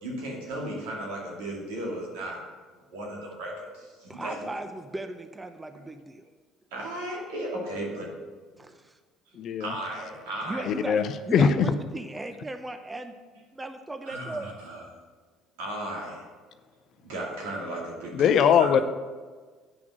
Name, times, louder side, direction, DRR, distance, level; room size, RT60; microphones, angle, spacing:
voice 1, 0.0-2.5 2.9-4.5 5.7-5.8 6.7-8.2 9.6-10.7 14.0-14.9 15.6-16.3 17.0-18.7, right 1 dB, 80° right, -2 dB, 2.6 m, -35 dB
voice 2, 4.1-6.2 8.6-9.0 10.5-11.0 11.3-13.1 13.5-14.5, right 2 dB, 15° right, 8 dB, 0.7 m, -37 dB
voice 3, 9.4-9.7 10.7-11.7 18.1-18.8, left 7 dB, 55° left, 10 dB, 0.6 m, -21 dB
9.1 x 5.9 x 6.2 m, 1.4 s
hypercardioid pair, 65°, 0 cm